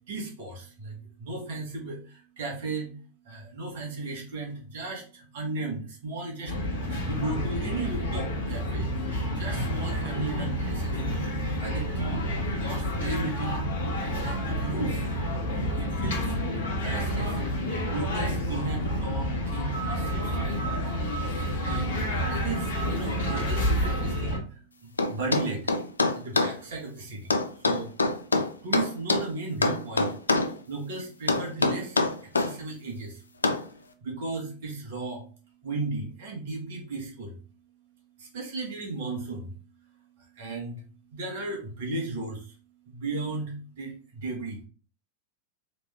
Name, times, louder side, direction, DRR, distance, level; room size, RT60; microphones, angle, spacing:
voice 1, 0.1-3.0 3.2-6.5 7.1-8.9 9.3-11.0 11.6-12.3 12.6-13.6 14.2-15.0 15.6-16.4 16.8-20.9 21.6-25.7 26.1-27.9 28.6-33.2 34.0-35.3 35.6-37.4 38.2-39.6 40.2-42.5 42.8-44.7, right 3 dB, 55° right, 0 dB, 1.5 m, -35 dB
sound 1, 6.5-24.4, equal, 60° left, 1.5 m, -29 dB
sound 2, 25.0-26.6 27.3-29.3 29.6-30.5 31.3-32.5 33.4-33.7, left 3 dB, 75° left, 0.5 m, -24 dB
3.9 x 3.3 x 3.5 m, 0.40 s
figure-of-eight pair, 90°, 0 cm